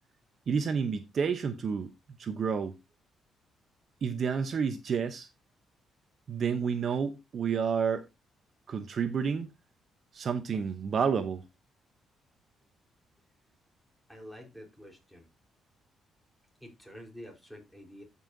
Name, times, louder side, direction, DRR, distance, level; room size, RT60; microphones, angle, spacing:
voice 1, 0.5-1.9 2.2-2.8 4.0-5.3 6.3-8.0 8.7-9.5 10.1-11.4, right 6 dB, 50° right, 0.8 m, -30 dB
voice 2, 14.1-15.3 16.6-18.0, equal, ahead, 4.0 m, -48 dB
13.5 x 5.5 x 2.7 m
cardioid pair, 90°, 0 cm